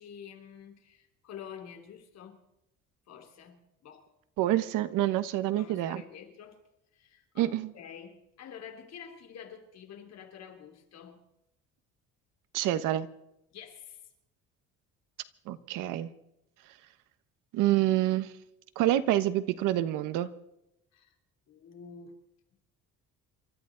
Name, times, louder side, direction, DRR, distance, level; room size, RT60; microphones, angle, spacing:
voice 1, 0.0-2.4 3.1-4.1 5.1-6.6 6.9-11.2 13.5-14.1 20.9-21.1 21.5-22.2, left 7 dB, 55° left, 3.3 m, -48 dB
voice 2, 4.4-6.0 7.4-7.7 12.5-13.1 15.5-16.1 17.5-18.3 18.8-20.3, right 14 dB, 85° right, 1.2 m, -27 dB
28.5 x 13.0 x 3.9 m
cardioid pair, 140°, 31 cm